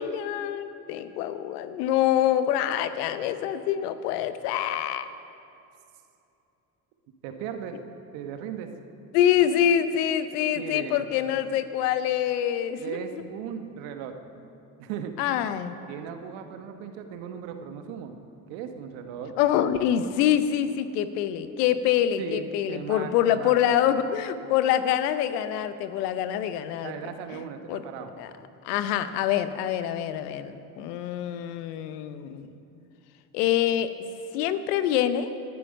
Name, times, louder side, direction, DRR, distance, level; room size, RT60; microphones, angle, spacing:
voice 1, 0.0-5.1 9.1-13.0 15.2-15.8 19.4-26.9 27.7-27.8 28.2-28.3 28.6-32.5 33.3-33.9 34.3-35.3, left 10 dB, 80° left, 12 dB, 0.9 m, -25 dB
voice 2, 7.2-7.8 8.1-8.7 10.5-11.1 12.8-14.1 14.8-15.1 15.9-18.1 18.5-19.3 22.2-23.6 26.8-28.1, right 8 dB, 75° right, 7 dB, 1.3 m, -37 dB
19.5 x 9.4 x 5.4 m, 2.7 s
hypercardioid pair, 60°, 46 cm